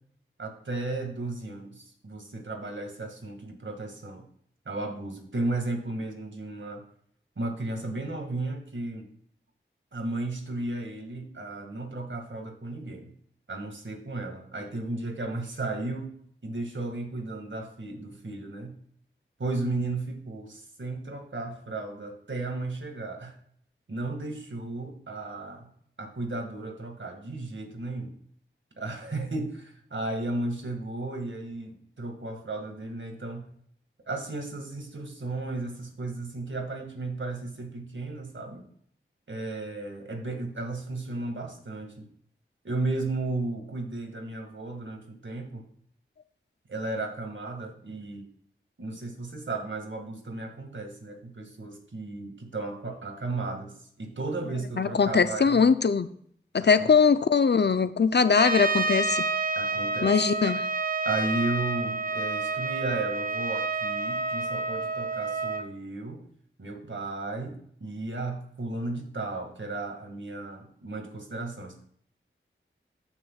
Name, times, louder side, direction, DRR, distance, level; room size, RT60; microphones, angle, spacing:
voice 1, 0.4-4.3 4.7-6.8 7.4-9.1 9.9-13.1 13.5-16.2 16.4-18.8 19.4-23.4 23.9-25.7 26.0-28.1 28.8-33.5 34.1-38.7 39.3-42.1 42.6-45.7 46.7-48.3 48.8-55.7 56.6-56.9 59.6-60.2 61.1-66.2 66.6-71.8, right 2 dB, 65° right, 3 dB, 2.0 m, -34 dB
voice 2, 54.8-56.1 56.5-59.3 60.0-60.6, left 5 dB, 55° left, 13 dB, 0.5 m, -21 dB
Trumpet, 58.3-65.7, right 3 dB, 40° right, 0.8 m, -29 dB
14.0 x 6.1 x 2.4 m, 0.64 s
wide cardioid pair, 45°, 21 cm